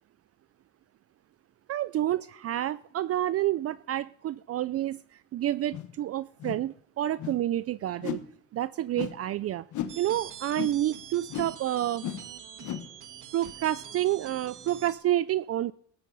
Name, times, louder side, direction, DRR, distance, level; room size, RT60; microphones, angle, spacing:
voice 1, 1.7-8.2 8.5-9.6 10.0-12.0 13.3-15.7, right 13 dB, 50° right, 17 dB, 0.4 m, -29 dB
sound 1, 5.7-5.9 6.4-6.7 7.2-7.4 8.0-8.3 8.9-9.2 9.7-10.0 10.5-10.8 11.3-11.6 12.0-12.3 12.6-12.9 13.4-13.5, left 10 dB, 75° left, 1.2 m, -35 dB
sound 2, 9.9-14.9, right 9 dB, 85° right, 1.5 m, -45 dB
16.5 x 12.5 x 4.0 m, 0.63 s
cardioid pair, 90°, 30 cm